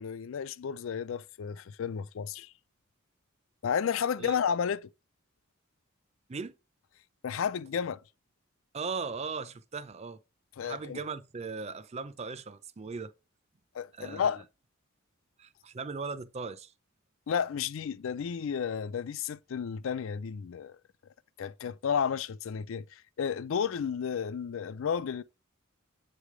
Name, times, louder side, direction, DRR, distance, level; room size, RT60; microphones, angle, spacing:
voice 1, 0.0-2.5 3.6-4.9 7.2-8.0 10.6-11.0 13.7-14.4 17.3-20.8 21.4-25.2, left 7 dB, 65° left, 0.4 m, -32 dB
voice 2, 8.7-10.2 10.6-13.1 13.9-14.3 15.4-16.7, right 4 dB, 30° right, 0.5 m, -38 dB
8.1 x 3.3 x 4.8 m
head